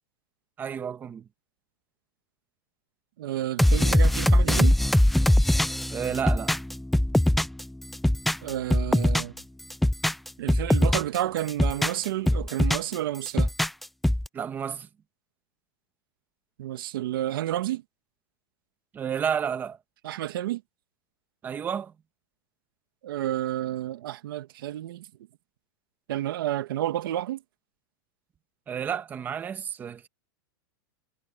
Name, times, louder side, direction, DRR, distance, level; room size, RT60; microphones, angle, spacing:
voice 1, 0.6-1.3 5.9-6.6 14.3-14.9 18.9-19.8 21.4-21.9 28.7-30.1, right 8 dB, 15° right, 1.4 m, -31 dB
voice 2, 3.2-4.7 8.4-9.3 10.4-13.5 16.6-17.8 20.0-20.6 23.0-25.1 26.1-27.4, right 13 dB, 70° right, 2.2 m, -30 dB
sound 1, 3.6-7.6 7.9-9.4 9.7-11.2 11.5-12.9 13.3-14.3, left 1 dB, ahead, 0.3 m, -21 dB
supercardioid pair, 170°, 12 cm